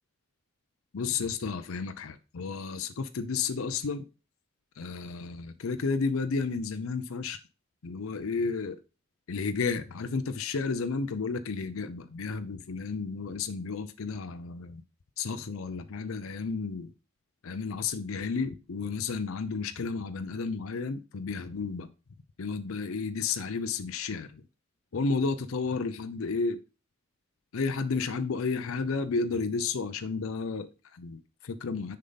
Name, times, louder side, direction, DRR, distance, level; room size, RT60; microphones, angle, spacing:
voice 1, 0.9-4.0 4.8-7.4 7.8-8.8 9.3-14.8 15.2-16.9 17.4-21.9 22.4-24.4 24.9-26.6 27.5-32.0, left 4 dB, 80° left, 0.6 m, -32 dB
6.7 x 5.4 x 3.9 m
head